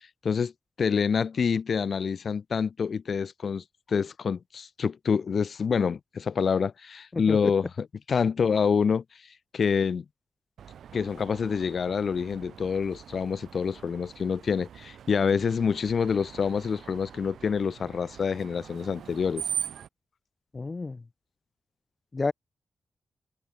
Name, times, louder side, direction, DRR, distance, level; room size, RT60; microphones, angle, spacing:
voice 1, 0.8-7.7 8.1-9.0 9.5-10.0 10.9-19.4, left 6 dB, 65° left, 1.3 m, -27 dB
voice 2, 7.1-7.5 20.5-21.0 22.1-22.3, left 3 dB, 35° left, 1.1 m, -30 dB
Screech, 10.6-19.9, right 8 dB, 85° right, 7.5 m, -41 dB
cardioid pair, 70°, 0 cm